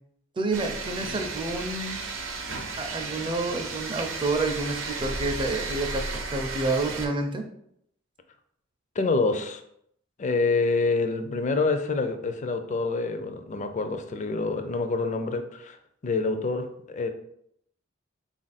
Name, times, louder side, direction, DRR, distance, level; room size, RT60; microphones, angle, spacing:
voice 1, 0.4-2.0 2.8-7.4, right 2 dB, 25° right, 4 dB, 0.5 m, -29 dB
sound 1, 0.5-7.1, right 3 dB, 85° right, 0.6 m, -34 dB
voice 2, 9.0-9.6 10.2-15.8 16.0-17.1, left 3 dB, 40° left, 8 dB, 0.4 m, -27 dB
4.0 x 2.5 x 4.0 m, 0.72 s
head